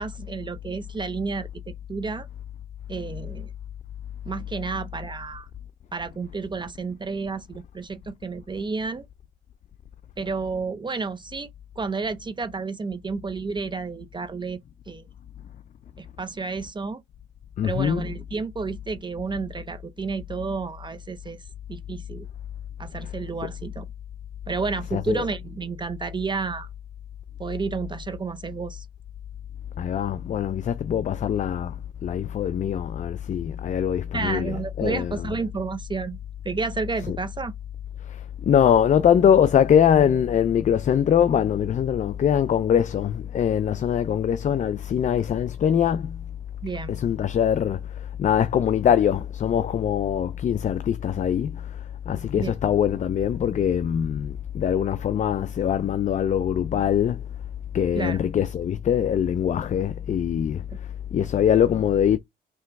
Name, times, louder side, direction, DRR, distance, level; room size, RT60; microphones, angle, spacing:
voice 1, 0.0-1.5 1.9-2.3 2.9-3.5 4.2-5.5 5.9-9.1 10.2-11.5 11.8-14.6 14.9-15.1 16.0-17.0 17.6-21.4 21.7-22.3 22.8-23.9 24.5-26.7 27.4-28.9 34.1-36.2 36.4-37.5 46.6-46.9 52.4-52.5 57.9-58.3, right 4 dB, 25° right, 0.5 m, -31 dB
voice 2, 17.6-18.1 24.9-25.2 29.8-31.7 32.0-35.2 38.5-46.2 46.9-47.8 48.2-51.6 52.1-57.2 57.7-60.6 61.1-62.2, left 9 dB, 40° left, 0.4 m, -22 dB
3.4 x 2.9 x 4.6 m
cardioid pair, 90°, 20 cm